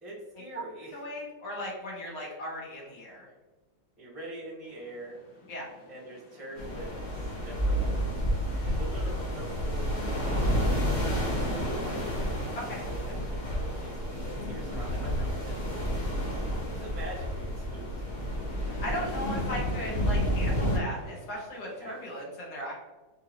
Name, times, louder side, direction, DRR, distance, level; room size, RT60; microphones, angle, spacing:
voice 1, 0.0-1.0 4.0-5.2 5.9-8.1 8.6-12.3 12.6-15.6 16.7-17.9 18.2-18.5 21.8-22.0, right 1 dB, ahead, -5 dB, 0.7 m, -44 dB
voice 2, 0.9-3.3 5.5-5.7 12.5-12.8 18.8-22.7, equal, 75° left, -4 dB, 1.9 m, -37 dB
sound 1, 4.6-22.2, left 1 dB, 55° left, 1.1 m, -46 dB
sound 2, 6.5-20.8, equal, 40° left, 0.6 m, -30 dB
4.7 x 2.7 x 2.9 m, 1.2 s
omnidirectional pair, 2.0 m